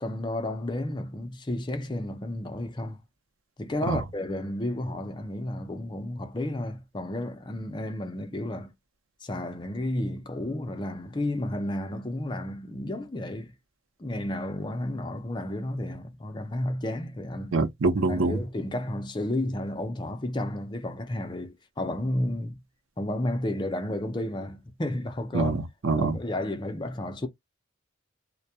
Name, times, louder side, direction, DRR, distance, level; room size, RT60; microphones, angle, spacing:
voice 1, 0.0-3.0 3.6-8.7 9.2-13.5 14.0-17.6 18.1-22.6 23.0-25.6 25.9-27.3, left 1 dB, 25° left, 0.5 m, -32 dB
voice 2, 17.5-18.4 25.3-26.2, right 3 dB, 85° right, 0.7 m, -25 dB
2.2 x 2.2 x 2.7 m
head